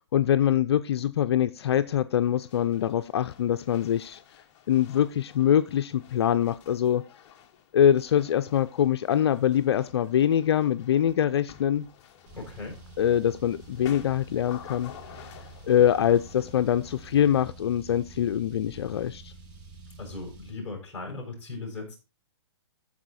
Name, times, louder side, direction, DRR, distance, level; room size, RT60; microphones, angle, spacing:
voice 1, 0.1-4.2 4.7-7.0 7.7-11.9 13.0-14.9 15.7-19.3, left 10 dB, 65° left, 0.5 m, -24 dB
sound 1, 2.2-17.1, left 9 dB, 30° left, 1.0 m, -51 dB
voice 2, 12.3-12.8 20.0-22.0, left 3 dB, 10° left, 5.9 m, -38 dB
Car, 12.3-20.5, right 3 dB, 40° right, 3.0 m, -48 dB
14.5 x 4.9 x 4.1 m
hypercardioid pair, 150°, 15 cm